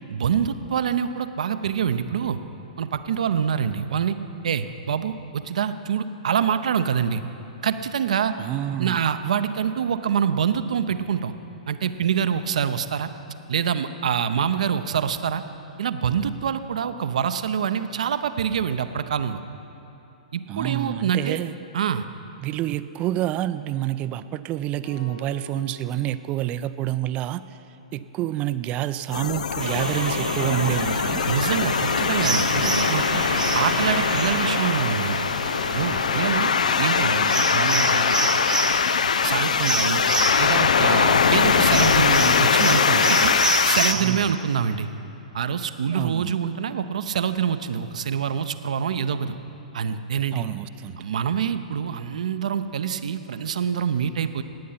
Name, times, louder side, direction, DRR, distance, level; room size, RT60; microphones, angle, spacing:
voice 1, 0.1-2.4 2.8-4.2 4.4-7.2 7.6-8.3 8.8-11.3 11.7-13.1 13.5-15.4 15.8-19.4 20.3-21.4 21.7-22.0 31.3-33.2 33.5-35.3 35.7-36.5 36.8-38.4 39.2-40.0 40.4-43.4 43.6-44.9 45.3-49.4 49.7-50.4 51.0-54.4, right 7 dB, 65° right, 11 dB, 0.7 m, -25 dB
voice 2, 8.4-9.0 20.5-21.5 22.4-27.4 27.9-31.2 43.9-44.4 45.9-46.3 50.3-51.0, right 13 dB, 30° right, 13 dB, 0.4 m, -28 dB
sound 1, 24.8-27.2, left 3 dB, 40° left, 2.9 m, -46 dB
sound 2, 29.1-43.9, left 6 dB, 70° left, 0.4 m, -22 dB
sound 3, 29.6-44.2, right 4 dB, 85° right, 1.3 m, -29 dB
18.0 x 8.5 x 5.8 m, 2.8 s
figure-of-eight pair, 115°, 4 cm